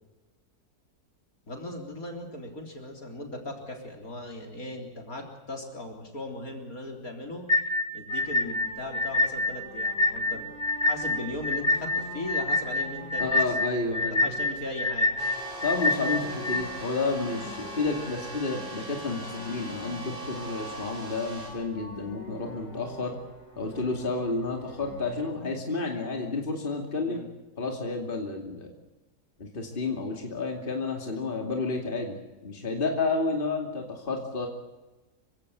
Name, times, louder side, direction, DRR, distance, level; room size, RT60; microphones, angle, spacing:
voice 1, 1.5-7.5 7.9-10.5 10.8-13.4 14.2-15.1 27.0-27.3, left 2 dB, 60° left, 2 dB, 4.3 m, -38 dB
sound 1, 7.5-16.6, left 2 dB, 15° left, 1.9 m, -26 dB
sound 2, 8.1-25.3, equal, 90° left, 4.5 m, -46 dB
voice 2, 13.2-14.2 15.6-23.2 23.6-27.2 27.6-28.7 29.4-32.2 32.4-34.5, left 3 dB, 35° left, 2 dB, 2.8 m, -30 dB
sound 3, 15.2-21.5, equal, 50° right, 7.8 m, -40 dB
27.0 x 16.5 x 8.1 m, 1.1 s
omnidirectional pair, 1.7 m